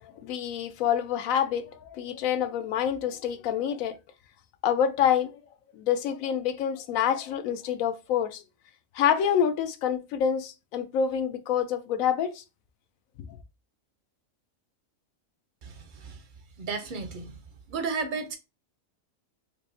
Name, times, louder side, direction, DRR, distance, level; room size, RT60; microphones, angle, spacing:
voice 1, 0.0-4.0 4.6-5.4 5.7-8.4 8.9-12.4 13.2-13.3, left 8 dB, 85° left, 1.0 m, -27 dB
voice 2, 15.6-16.2 16.6-17.3 17.7-18.4, right 4 dB, 50° right, 0.6 m, -33 dB
4.2 x 2.6 x 2.6 m
omnidirectional pair, 1.4 m